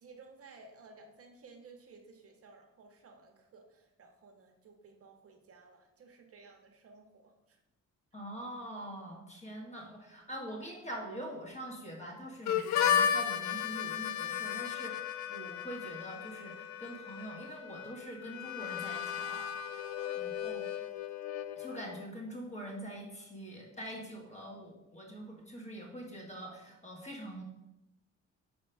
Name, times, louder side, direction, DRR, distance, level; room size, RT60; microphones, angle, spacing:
voice 1, 0.0-7.6 20.0-20.6, right 4 dB, 50° right, 3 dB, 0.9 m, -56 dB
voice 2, 8.1-20.6 21.5-27.4, right 1 dB, 25° left, -1 dB, 1.6 m, -44 dB
Harmonica, 12.5-22.1, left 9 dB, 70° left, 0.5 m, -34 dB
5.0 x 4.3 x 4.6 m, 0.92 s
cardioid pair, 90°, 30 cm